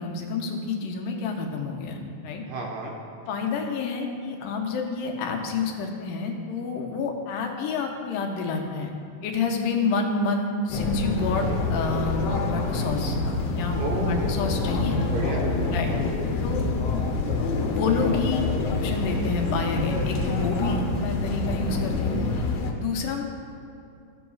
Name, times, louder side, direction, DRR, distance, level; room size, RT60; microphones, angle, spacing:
voice 1, 0.0-2.4 3.3-8.9 9.2-13.2 13.6-15.0 15.7-16.0 16.4-16.6 17.7-22.2 22.8-23.2, left 4 dB, 90° left, 2 dB, 2.4 m, -28 dB
voice 2, 2.5-2.9 13.8-14.6 15.1-16.3, right 2 dB, 85° right, -1 dB, 2.7 m, -33 dB
sound 1, 10.7-22.7, left 3 dB, 75° left, 1.4 m, -26 dB
14.0 x 7.0 x 2.4 m, 2.5 s
omnidirectional pair, 3.7 m